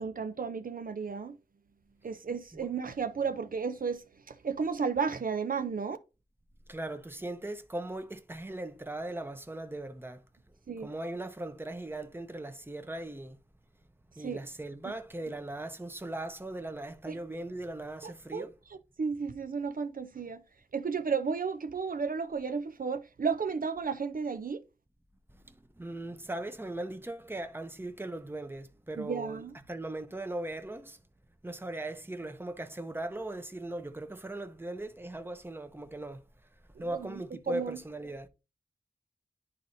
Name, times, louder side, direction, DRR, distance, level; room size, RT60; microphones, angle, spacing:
voice 1, 0.0-1.4 2.0-6.0 10.7-10.9 14.2-14.4 14.9-15.0 17.1-17.2 18.0-20.4 20.7-24.6 29.0-29.5 36.8-37.8, right 5 dB, 70° right, 0.5 m, -33 dB
voice 2, 6.7-10.2 10.8-13.4 14.2-18.5 25.8-29.4 29.7-31.0 31.4-36.2 36.8-38.3, right 1 dB, 15° right, 0.7 m, -39 dB
11.0 x 4.1 x 2.6 m
wide cardioid pair, 80°, 15 cm